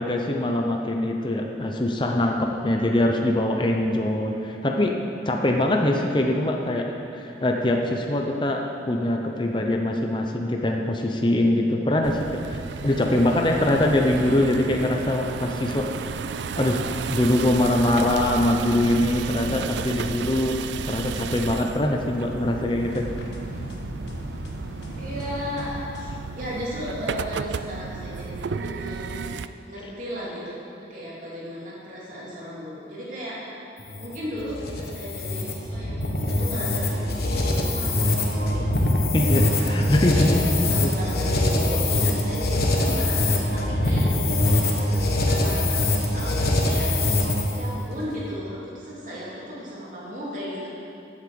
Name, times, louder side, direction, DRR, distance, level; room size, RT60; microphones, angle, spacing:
voice 1, 0.0-4.9 5.3-15.9 16.5-16.8 17.1-20.6 20.9-23.1 39.1-40.9, left 1 dB, 25° left, 2 dB, 0.7 m, -23 dB
sound 1, 12.0-29.5, right 5 dB, 80° right, 0.4 m, -33 dB
sound 2, 22.8-26.5, equal, 75° left, 1.4 m, -37 dB
voice 2, 25.0-29.4 29.6-30.4 30.9-33.5 34.0-38.7 40.1-40.3 40.7-46.9 47.6-50.7, equal, 45° right, -7 dB, 3.4 m, -35 dB
sound 3, 33.8-47.7, left 1 dB, 55° left, 1.4 m, -23 dB
14.5 x 8.3 x 5.3 m, 2.7 s
head